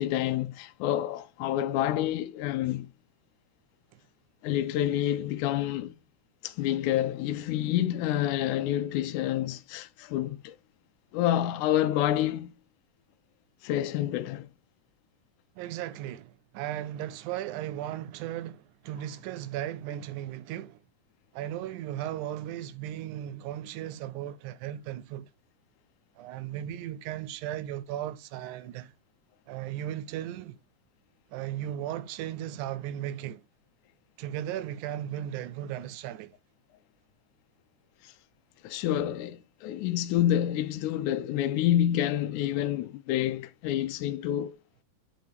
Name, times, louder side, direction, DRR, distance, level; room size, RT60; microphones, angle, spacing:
voice 1, 0.0-2.9 4.4-5.9 6.4-10.6 11.1-12.5 13.6-14.5 38.0-38.1 38.6-44.6, left 12 dB, 80° left, 2.0 m, -28 dB
voice 2, 15.6-20.8 21.3-25.3 26.2-28.9 29.5-30.6 31.3-33.4 34.2-36.3, right 12 dB, 80° right, 1.9 m, -36 dB
9.5 x 3.7 x 3.4 m
omnidirectional pair, 3.6 m